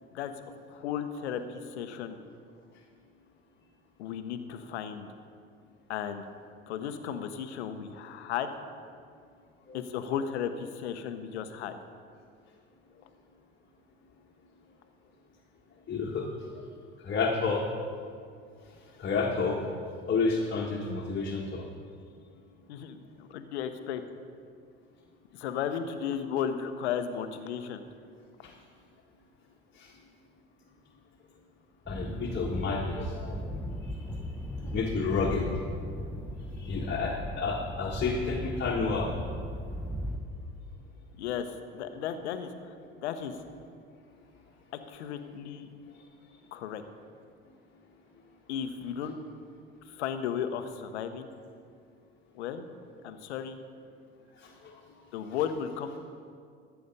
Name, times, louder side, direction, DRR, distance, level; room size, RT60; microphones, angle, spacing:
voice 1, 0.1-2.2 4.0-5.1 5.9-6.2 6.7-8.5 9.7-11.8 22.7-24.0 25.3-27.8 41.2-42.7 43.0-43.3 44.7-45.7 46.5-46.8 48.5-49.2 49.9-51.3 52.3-52.6 53.0-53.6 55.1-56.0, left 8 dB, 85° left, 9 dB, 0.8 m, -35 dB
voice 2, 15.9-16.3 17.0-17.6 19.0-19.7 20.1-21.6 28.4-28.5 29.8-29.9 31.9-33.6 34.6-35.5 36.6-39.1 54.4-54.8, left 4 dB, 35° left, -2 dB, 1.5 m, -30 dB
sound 1, 31.9-40.2, equal, 5° left, 1.0 m, -37 dB
14.5 x 7.0 x 5.4 m, 2.2 s
hypercardioid pair, 65°, 33 cm